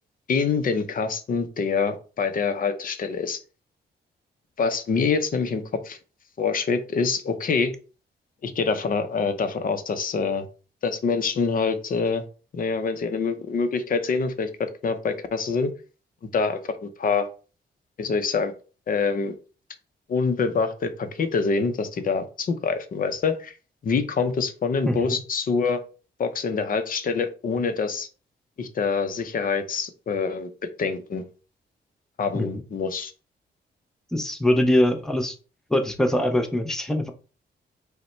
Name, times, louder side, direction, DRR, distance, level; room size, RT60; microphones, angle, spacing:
voice 1, 0.3-3.4 4.6-6.0 6.4-7.7 8.4-10.5 10.8-12.2 12.5-15.7 16.3-17.3 18.0-18.5 18.9-19.3 20.1-23.5 23.8-25.8 26.2-28.1 28.6-30.5 30.8-31.2 32.2-33.1, left 5 dB, 50° left, 9 dB, 0.7 m, -25 dB
voice 2, 24.8-25.2 32.4-32.6 34.1-35.4 35.7-37.1, left 1 dB, 5° left, 5 dB, 0.6 m, -23 dB
5.4 x 2.2 x 4.3 m, 0.36 s
wide cardioid pair, 155°, 19 cm